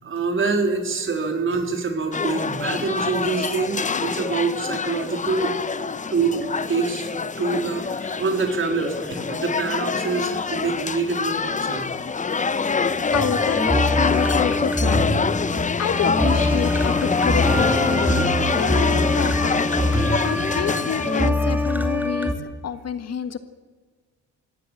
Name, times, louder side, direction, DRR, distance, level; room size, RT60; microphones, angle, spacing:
voice 1, 0.0-5.5 6.1-7.1 7.4-11.9 12.9-13.1 16.9-17.0, right 4 dB, 40° right, 4 dB, 3.9 m, -25 dB
sound 1, 2.1-21.3, left 5 dB, 25° left, 0.8 m, -25 dB
voice 2, 13.1-15.4 15.8-22.3 22.6-23.4, left 7 dB, 55° left, 10 dB, 1.6 m, -29 dB
sound 2, 13.1-22.3, left 1 dB, 5° right, 2.5 m, -23 dB
22.0 x 17.0 x 8.9 m, 1.4 s
cardioid pair, 90°, 30 cm